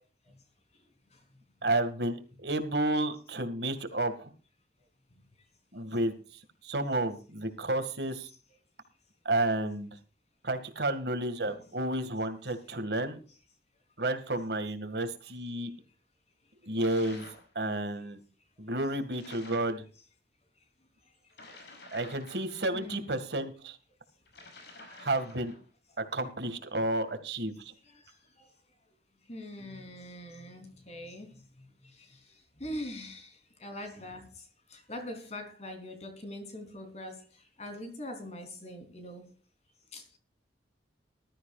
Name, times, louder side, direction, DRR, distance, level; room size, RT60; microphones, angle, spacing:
voice 1, 0.8-1.2 1.6-1.7 5.1-5.2 11.4-11.7 16.6-16.8 18.7-18.8 22.7-23.1 24.9-25.1 27.8-28.5 29.3-39.3 39.9-40.2, left 1 dB, 40° left, 3.7 m, -44 dB
voice 2, 1.6-4.3 5.7-6.1 6.6-8.3 9.3-10.0 10.4-13.2 14.0-15.7 16.6-17.2 17.6-18.2 18.6-19.8 21.9-23.8 24.9-25.5 26.0-27.7, right 2 dB, 65° right, 2.1 m, -31 dB
sound 1, 16.8-17.5 19.1-19.8 21.3-23.0 24.3-25.6, left 2 dB, 70° left, 6.2 m, -50 dB
20.0 x 13.0 x 2.5 m
head